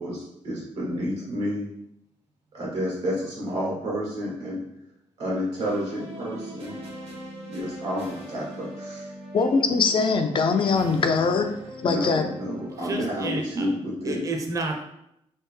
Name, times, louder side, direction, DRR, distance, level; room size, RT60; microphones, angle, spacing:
voice 1, 0.0-1.7 2.5-4.6 5.2-6.7 7.5-9.1 11.8-14.2, equal, 90° right, -5 dB, 1.5 m, -30 dB
sound 1, 5.6-13.0, equal, 65° right, 1.0 m, -40 dB
voice 2, 9.3-11.6 11.8-12.2, left 4 dB, 50° left, 6 dB, 0.4 m, -22 dB
voice 3, 12.8-13.7 14.1-14.8, right 2 dB, 30° right, 3 dB, 0.6 m, -30 dB
3.3 x 2.7 x 3.2 m, 0.79 s
cardioid pair, 90°, 11 cm